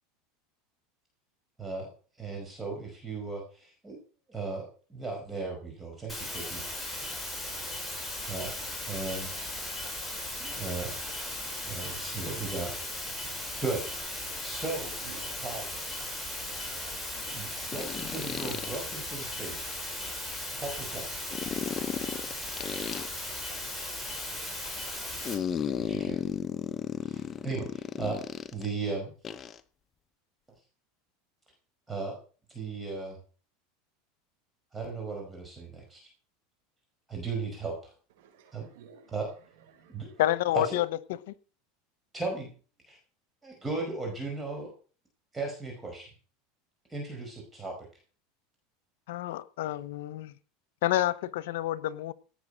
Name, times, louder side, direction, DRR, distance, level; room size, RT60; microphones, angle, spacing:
voice 1, 1.6-4.0 4.3-6.7 8.3-8.6 8.8-9.5 10.4-10.9 11.6-12.7 13.6-13.9 14.4-15.0 15.4-15.7 17.2-19.7 20.6-21.1 25.8-26.2 27.0-28.2 28.5-29.1 31.9-32.2 32.5-33.2 34.7-36.1 37.1-37.9 38.5-38.7 39.1-39.3 39.9-40.2 40.5-40.8 42.1-42.5 42.9-43.0 43.4-44.7 45.3-46.1 46.9-47.8, right 3 dB, 10° right, 5.2 m, -36 dB
sound 1, 6.1-25.3, left 1 dB, 5° left, 6.5 m, -37 dB
voice 2, 15.0-15.4 38.2-39.1 39.7-40.2, right 6 dB, 80° right, 6.5 m, -53 dB
sound 2, 15.1-15.2 17.7-18.8 21.3-23.1 25.2-28.7 29.2-29.6, left 8 dB, 25° left, 1.0 m, -34 dB
voice 3, 40.2-40.8 41.3-41.4 49.1-50.3 50.8-52.1, left 14 dB, 80° left, 1.0 m, -28 dB
17.5 x 8.2 x 6.5 m
supercardioid pair, 135°, 0 cm